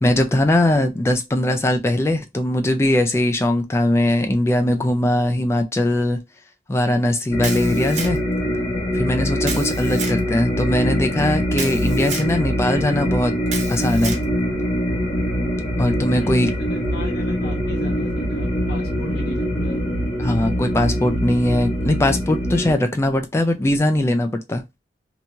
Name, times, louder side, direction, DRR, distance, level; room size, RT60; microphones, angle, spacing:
voice 1, 0.0-6.2 6.7-8.2 8.9-13.3 13.7-14.2 15.8-16.5 20.2-24.6, left 1 dB, 15° left, 0.3 m, -20 dB
sound 1, 7.3-22.7, equal, 35° left, 1.2 m, -23 dB
Camera, 7.4-8.4 9.4-10.2 11.5-12.3 13.5-14.2, right 4 dB, 40° right, 0.6 m, -31 dB
voice 2, 16.1-19.8, left 1 dB, 55° left, 1.0 m, -36 dB
2.9 x 2.2 x 2.7 m
head